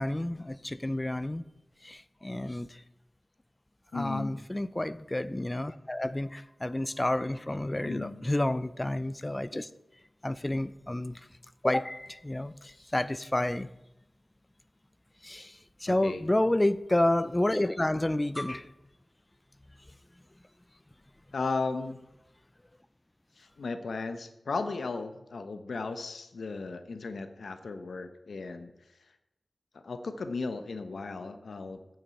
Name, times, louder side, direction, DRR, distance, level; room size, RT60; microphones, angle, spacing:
voice 1, 0.0-1.4 1.8-2.8 3.9-9.7 10.2-11.2 11.6-13.7 15.2-18.7, left 1 dB, 20° left, 0.5 m, -30 dB
voice 2, 3.9-4.4 7.8-8.2 15.9-16.2 21.3-22.0 23.4-28.7 29.7-31.8, left 4 dB, 90° left, 0.9 m, -35 dB
8.9 x 7.3 x 8.5 m
wide cardioid pair, 70°, 0 cm